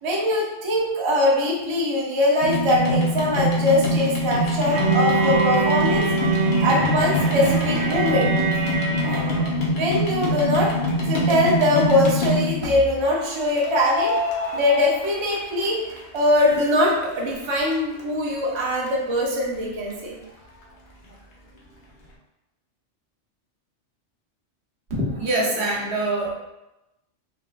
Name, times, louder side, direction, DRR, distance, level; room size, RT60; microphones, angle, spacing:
voice 1, 0.0-6.1 6.6-8.3 8.9-9.2 9.8-10.7 11.1-14.1 14.5-15.8 16.1-20.2, left 1 dB, 40° right, -3 dB, 0.4 m, -22 dB
sound 1, 2.4-12.7 13.6-15.7 16.0-16.9 17.4-17.5 17.7-17.8 18.0-18.1 18.6-18.7 18.9-19.0, equal, 55° left, 0.7 m, -24 dB
Bowed string instrument, 4.7-9.6, right 4 dB, 90° right, 1.0 m, -24 dB
voice 2, 24.9-26.3, right 2 dB, 65° right, -5 dB, 1.0 m, -24 dB
3.5 x 2.4 x 2.4 m, 0.94 s
omnidirectional pair, 1.2 m